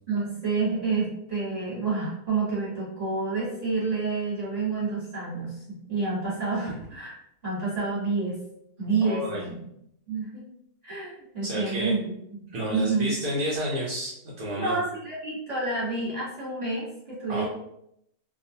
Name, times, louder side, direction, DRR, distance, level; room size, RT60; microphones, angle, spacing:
voice 1, 0.1-7.2 7.4-8.4 8.8-9.7 10.1-10.4 10.8-13.1 14.6-17.4, right 4 dB, 25° right, -10 dB, 1.5 m, -29 dB
voice 2, 9.0-9.4 11.4-11.9 12.5-14.8 17.3-17.4, equal, 75° right, -6 dB, 1.2 m, -30 dB
2.8 x 2.4 x 2.7 m, 0.76 s
omnidirectional pair, 1.6 m